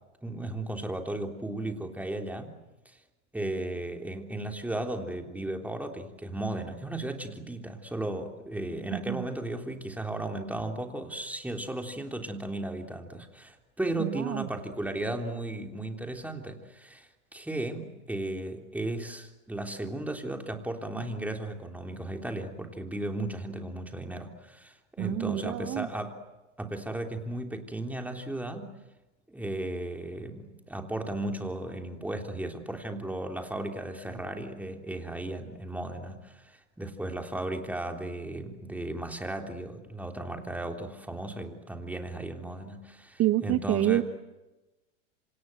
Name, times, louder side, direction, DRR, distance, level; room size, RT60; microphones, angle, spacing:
voice 1, 0.2-2.6 3.3-26.2 26.6-28.7 29.3-44.0, right 1 dB, 5° right, 4 dB, 3.5 m, -35 dB
voice 2, 8.9-9.3 14.0-14.5 25.0-25.9 43.2-44.0, right 15 dB, 40° right, 10 dB, 1.2 m, -27 dB
27.0 x 27.0 x 7.8 m, 1.1 s
hypercardioid pair, 100°, 37 cm